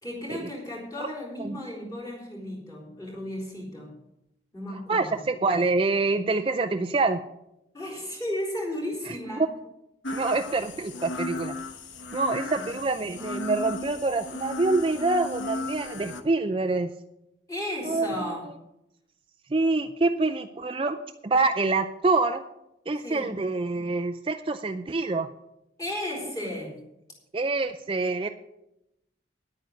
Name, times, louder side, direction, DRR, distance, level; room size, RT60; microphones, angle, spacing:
voice 1, 0.0-4.0 4.5-5.2 7.7-9.5 12.1-12.2 12.5-12.7 17.5-18.6 23.0-23.3 25.8-26.8, left 1 dB, 20° left, -4 dB, 3.8 m, -34 dB
voice 2, 4.9-7.2 10.1-11.5 12.1-16.9 17.9-18.1 19.5-22.4 22.9-25.3 27.3-28.3, right 3 dB, 30° right, 7 dB, 0.4 m, -26 dB
sound 1, 10.0-16.2, left 2 dB, 80° left, 1.1 m, -35 dB
10.5 x 9.1 x 6.4 m, 0.87 s
head